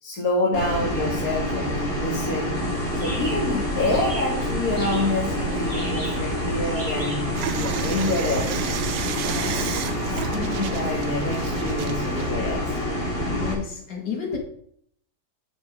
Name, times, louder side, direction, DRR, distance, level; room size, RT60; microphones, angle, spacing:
voice 1, 0.0-2.6 2.9-7.3 7.6-8.6 9.3-12.8, left 1 dB, 60° left, -4 dB, 2.4 m, -28 dB
sound 1, 0.5-13.5, left 1 dB, 35° left, 3.7 m, -27 dB
sound 2, 2.5-7.5, equal, 20° right, 3.1 m, -37 dB
sound 3, 7.3-12.3, right 8 dB, 75° right, 1.4 m, -33 dB
voice 2, 13.3-14.4, left 6 dB, 85° left, 1 dB, 2.9 m, -30 dB
9.3 x 9.2 x 3.9 m, 0.64 s
omnidirectional pair, 1.8 m